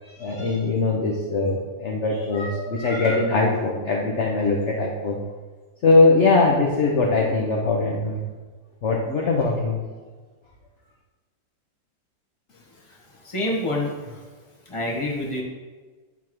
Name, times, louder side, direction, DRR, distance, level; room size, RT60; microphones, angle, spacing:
voice 1, 0.2-5.2 5.8-8.2 8.8-9.8, left 3 dB, 45° left, -2 dB, 1.0 m, -21 dB
voice 2, 12.9-14.3 14.6-15.4, left 1 dB, 15° left, -2 dB, 1.4 m, -28 dB
9.7 x 3.6 x 6.1 m, 1.4 s
omnidirectional pair, 2.1 m